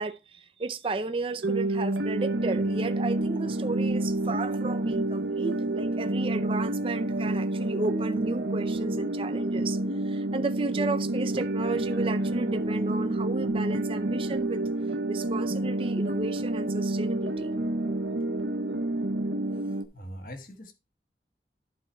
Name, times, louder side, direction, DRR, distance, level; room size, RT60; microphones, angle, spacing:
voice 1, 0.0-9.8 10.0-14.6 15.1-17.5, right 3 dB, 30° right, 0.5 m, -33 dB
sound 1, 1.4-19.9, right 2 dB, 80° right, 0.9 m, -29 dB
voice 2, 19.9-20.7, equal, 50° left, 1.4 m, -41 dB
11.0 x 4.4 x 4.3 m
head